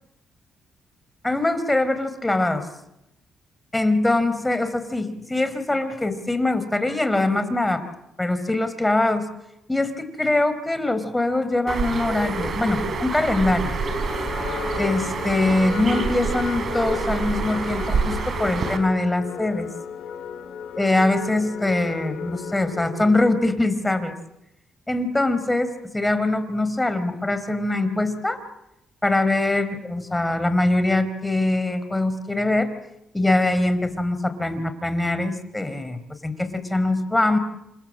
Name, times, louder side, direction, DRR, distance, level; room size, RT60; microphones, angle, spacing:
voice 1, 1.2-2.7 3.7-7.8 8.2-9.3 9.7-13.7 14.8-19.7 20.8-24.1 24.9-28.4 29.0-32.8 33.1-37.4, left 2 dB, 15° left, 11 dB, 4.3 m, -23 dB
Bird, 11.7-18.8, right 4 dB, 55° right, 5.2 m, -27 dB
sound 1, 13.5-23.7, left 8 dB, 80° left, 3.1 m, -35 dB
29.0 x 26.0 x 7.7 m, 0.87 s
supercardioid pair, 65°, 0 cm